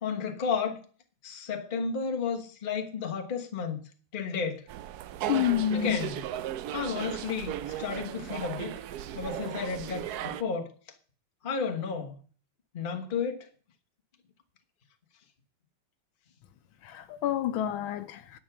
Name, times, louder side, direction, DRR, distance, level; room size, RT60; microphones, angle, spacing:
voice 1, 0.0-0.8 1.2-4.6 5.7-6.2 6.7-8.8 9.1-10.7 11.4-12.2 12.7-13.5, left 5 dB, 30° left, 1.0 m, -32 dB
sound 1, 4.7-10.4, right 11 dB, 80° right, 0.8 m, -36 dB
voice 2, 5.3-6.0 16.8-18.4, left 10 dB, 75° left, 1.5 m, -29 dB
10.5 x 7.0 x 5.9 m
omnidirectional pair, 2.3 m